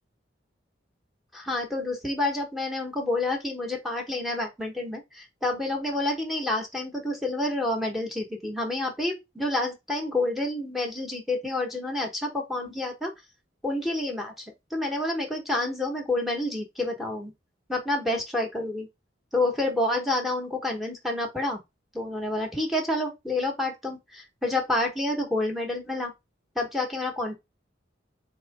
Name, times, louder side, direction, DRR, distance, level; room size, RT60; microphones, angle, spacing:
voice 1, 1.3-13.1 13.6-14.4 14.7-17.3 17.7-18.9 19.3-21.6 21.9-26.1 26.5-27.3, left 2 dB, ahead, 1.0 m, -28 dB
3.6 x 3.1 x 4.0 m
head